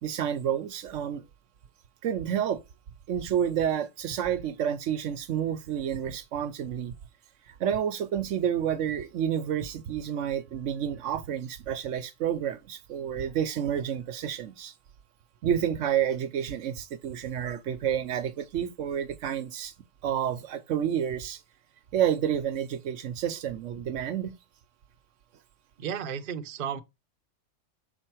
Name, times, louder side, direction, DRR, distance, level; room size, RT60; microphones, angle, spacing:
voice 1, 0.0-1.2 2.0-2.6 3.1-6.9 7.6-14.7 15.4-19.7 20.0-21.4 21.9-24.3, right 9 dB, 70° right, 1.0 m, -29 dB
voice 2, 25.8-26.8, right 8 dB, 50° right, 0.8 m, -33 dB
7.1 x 4.4 x 4.5 m
omnidirectional pair, 1.3 m